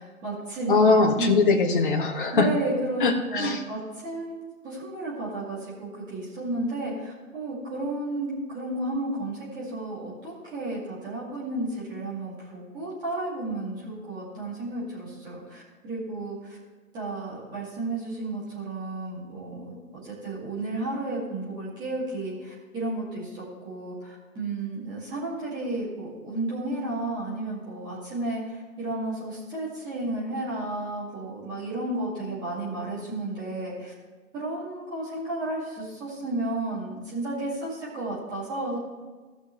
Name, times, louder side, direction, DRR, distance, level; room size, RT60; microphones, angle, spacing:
voice 1, 0.0-1.4 2.3-4.4 4.6-16.6 16.9-19.7 20.0-33.9 34.3-38.8, right 2 dB, 10° right, -7 dB, 2.3 m, -32 dB
voice 2, 0.7-2.5 3.0-3.6, left 4 dB, 35° left, 2 dB, 1.4 m, -21 dB
17.5 x 6.1 x 3.2 m, 1.4 s
figure-of-eight pair, 150°, 42 cm